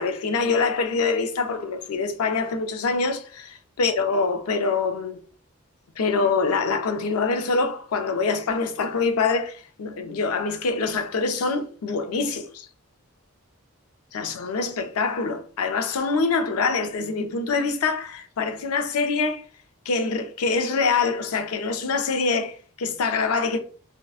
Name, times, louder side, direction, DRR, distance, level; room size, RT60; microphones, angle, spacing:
voice 1, 0.0-5.2 6.0-12.7 14.1-19.4 19.9-23.6, left 4 dB, 85° left, 0.4 m, -25 dB
2.6 x 2.1 x 2.3 m
head